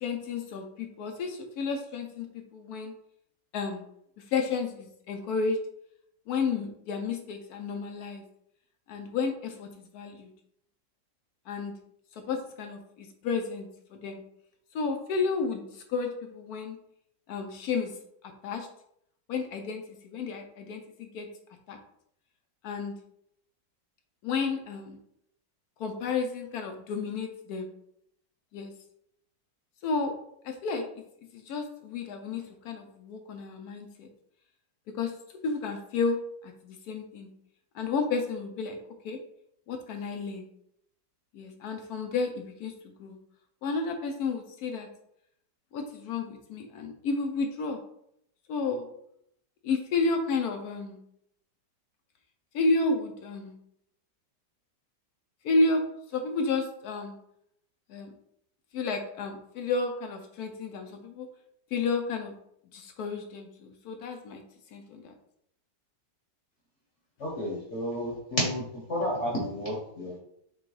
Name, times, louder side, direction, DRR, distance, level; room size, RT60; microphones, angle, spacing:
voice 1, 0.0-2.9 3.5-3.8 4.3-5.6 6.3-8.2 8.9-10.3 11.5-11.7 12.3-14.2 14.7-16.8 17.3-17.9 18.4-18.7 19.3-21.3 21.7-21.8 22.6-22.9 24.2-25.0 25.8-27.7 28.5-28.7 29.8-30.1 30.4-30.8 31.3-34.1 34.9-35.1 35.4-36.2 36.4-37.3 37.7-38.8 39.0-39.2 39.7-40.5 41.3-43.2 43.6-44.9 45.7-47.8 48.5-48.8 49.6-51.0 52.5-53.5 55.4-55.8 56.1-57.2 57.9-58.1 58.7-61.3 61.7-62.3 62.7-64.4 64.7-65.1, left 4 dB, 70° left, 5 dB, 1.0 m, -31 dB
voice 2, 67.2-70.2, equal, 50° left, -3 dB, 1.1 m, -31 dB
5.9 x 2.3 x 3.1 m, 0.73 s
omnidirectional pair, 1.9 m